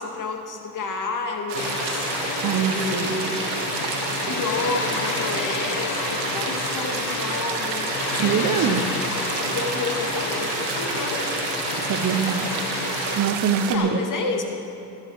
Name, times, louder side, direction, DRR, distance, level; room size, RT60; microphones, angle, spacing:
voice 1, 0.0-8.2 8.6-8.8 9.5-11.3 13.6-14.4, left 3 dB, 45° left, 3 dB, 2.3 m, -31 dB
Water, 1.5-13.2, left 6 dB, 85° left, 1.4 m, -30 dB
sound 1, 1.5-13.8, right 7 dB, 70° right, 1.6 m, -30 dB
voice 2, 2.4-3.2 8.1-8.8 11.8-12.5 13.2-14.0, right 7 dB, 40° right, 8 dB, 1.0 m, -23 dB
sound 2, 6.6-10.8 11.1-11.2, left 1 dB, 15° left, 2.9 m, -47 dB
14.5 x 9.8 x 6.4 m, 2.9 s
supercardioid pair, 80°, 45 cm